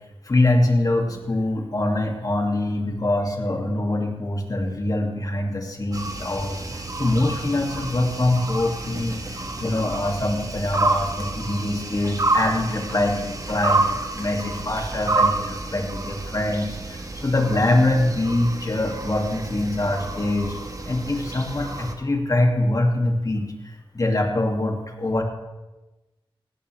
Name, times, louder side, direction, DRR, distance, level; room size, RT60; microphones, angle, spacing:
voice 1, 0.3-25.2, left 1 dB, 40° left, 2 dB, 2.5 m, -24 dB
sound 1, 5.9-21.9, right 2 dB, 40° right, 1.4 m, -29 dB
18.5 x 16.0 x 3.4 m, 1.1 s
wide cardioid pair, 75°, 9 cm